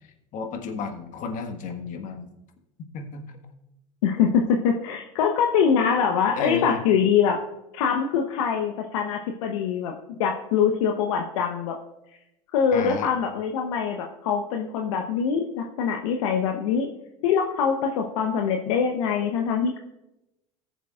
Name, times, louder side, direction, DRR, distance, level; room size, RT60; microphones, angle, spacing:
voice 1, 0.0-2.3 2.9-3.4 6.4-6.8 12.7-13.1, left 5 dB, 50° left, 5 dB, 1.5 m, -33 dB
voice 2, 4.0-7.4 7.7-9.9 10.2-11.8 12.5-16.9 17.2-19.8, left 7 dB, 70° left, 3 dB, 0.9 m, -23 dB
18.5 x 7.2 x 2.4 m, 0.91 s
hypercardioid pair, 85°, 17 cm